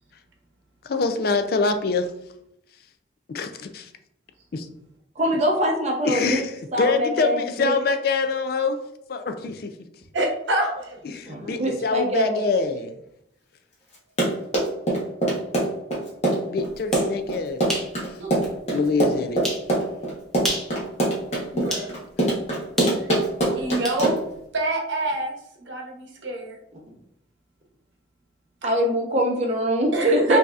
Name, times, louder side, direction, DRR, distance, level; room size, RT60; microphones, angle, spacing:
voice 1, 0.8-2.1 3.3-3.9 4.5-4.7 6.0-8.8 9.1-9.7 11.0-12.9 16.5-17.6 18.1-18.2 18.7-19.4, left 4 dB, 50° left, 8 dB, 0.3 m, -25 dB
voice 2, 5.2-6.4 6.7-7.7 11.3-12.4 28.6-30.4, equal, 35° right, 1 dB, 0.7 m, -23 dB
voice 3, 10.1-11.0 18.2-18.3 21.5-21.9 23.6-24.1 24.5-25.3 25.6-26.6 29.9-30.4, right 2 dB, 75° right, 1 dB, 0.9 m, -26 dB
Run, 13.9-24.4, right 1 dB, 35° left, 1.0 m, -23 dB
sound 1, 16.7-17.1 17.7-17.9 18.4-18.5 19.4-19.7 20.3-20.7 21.7-21.9 22.8-24.0, equal, ahead, 0.6 m, -29 dB
5.3 x 2.7 x 2.4 m, 0.77 s
head